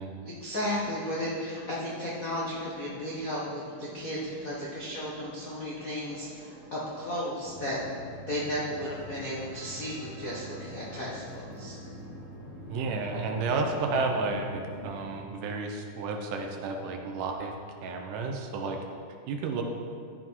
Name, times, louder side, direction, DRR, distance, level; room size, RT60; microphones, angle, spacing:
voice 1, 0.2-7.8 8.3-11.8, equal, 75° left, -7 dB, 0.7 m, -34 dB
sound 1, 0.6-14.3, right 1 dB, 25° right, 0.6 m, -50 dB
sound 2, 7.4-15.2, equal, 60° left, 1.6 m, -45 dB
voice 2, 12.7-17.5 17.8-18.8 19.3-19.6, right 3 dB, 75° right, 3 dB, 2.3 m, -31 dB
13.0 x 5.8 x 4.6 m, 2.2 s
omnidirectional pair, 3.8 m